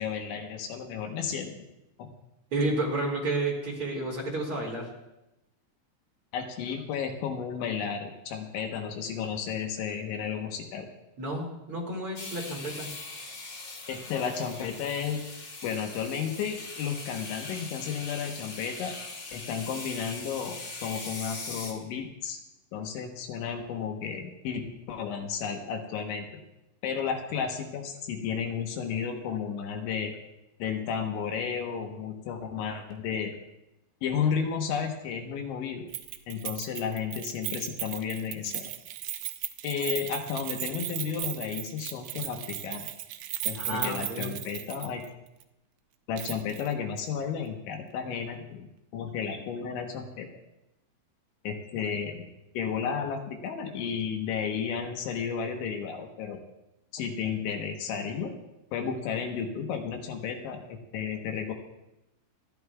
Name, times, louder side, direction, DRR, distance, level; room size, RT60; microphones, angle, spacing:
voice 1, 0.0-1.6 2.0-2.1 6.3-10.9 13.9-15.2 15.6-18.9 19.3-22.4 22.7-26.3 26.8-30.1 30.6-33.4 34.0-35.9 36.3-38.7 39.6-42.9 43.5-45.0 46.1-48.7 48.9-50.3 51.5-52.2 52.6-56.4 56.9-58.3 58.7-61.5, left 7 dB, 75° left, 3 dB, 3.4 m, -33 dB
voice 2, 2.5-4.9 11.2-12.9 43.6-44.3, right 2 dB, 40° right, -2 dB, 2.4 m, -31 dB
sound 1, 12.2-21.7, left 3 dB, 55° left, 1.4 m, -41 dB
Keys jangling, 35.9-45.1 45.4-45.5 46.2-46.7 47.0-47.1, right 14 dB, 85° right, 2.5 m, -36 dB
28.0 x 12.0 x 2.4 m, 0.91 s
omnidirectional pair, 5.8 m